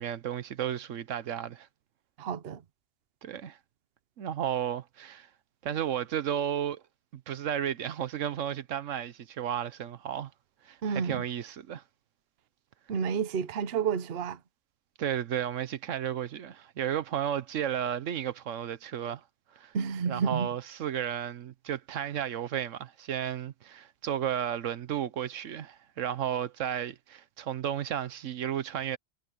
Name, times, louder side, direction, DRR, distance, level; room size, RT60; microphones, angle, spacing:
voice 1, 0.0-1.7 3.2-3.6 4.2-5.3 5.6-6.8 7.1-10.3 10.6-11.8 15.0-19.2 19.6-19.7 20.0-29.0, right 9 dB, 85° right, 1.2 m, -33 dB
voice 2, 2.2-2.6 10.8-11.2 12.9-14.4 19.7-20.5, right 6 dB, 55° right, 1.0 m, -30 dB
omnidirectional pair, 1.3 m